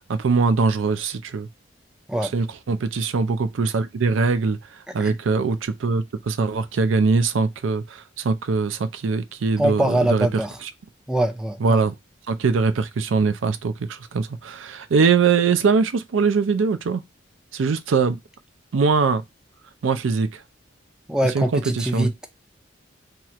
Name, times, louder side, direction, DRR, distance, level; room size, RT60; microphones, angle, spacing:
voice 1, 0.1-1.5 2.3-4.6 4.9-10.7 11.6-11.9 12.3-17.0 17.5-18.2 18.7-19.2 19.8-20.4 21.3-22.1, right 4 dB, 85° right, 0.4 m, -22 dB
voice 2, 9.6-10.6 11.1-11.8 21.1-22.3, right 1 dB, 5° right, 0.4 m, -23 dB
2.9 x 2.4 x 2.9 m
head